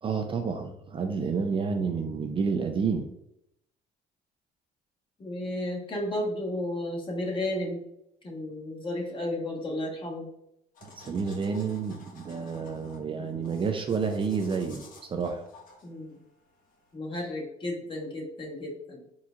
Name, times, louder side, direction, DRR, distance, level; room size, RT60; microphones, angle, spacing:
voice 1, 0.0-3.1 10.8-15.4, right 5 dB, 30° right, 5 dB, 0.4 m, -30 dB
voice 2, 5.2-7.8 8.2-10.3 15.8-16.2 16.9-19.0, left 1 dB, 30° left, -1 dB, 1.2 m, -33 dB
sound 1, 10.7-16.9, left 3 dB, 55° left, 1.2 m, -54 dB
4.4 x 4.0 x 2.4 m, 0.80 s
cardioid pair, 110°, 17 cm